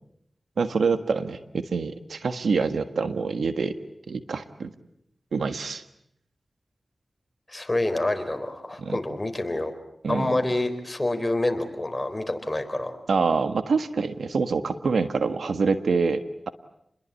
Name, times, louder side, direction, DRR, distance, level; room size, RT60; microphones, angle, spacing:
voice 1, 0.6-3.8 4.1-4.7 5.3-5.8 8.8-9.0 10.0-10.4 13.1-16.5, right 4 dB, 90° right, 10 dB, 1.5 m, -26 dB
voice 2, 7.5-9.7 10.1-12.9, left 1 dB, 25° left, 7 dB, 4.2 m, -27 dB
29.5 x 21.5 x 8.4 m, 0.76 s
cardioid pair, 60°, 0 cm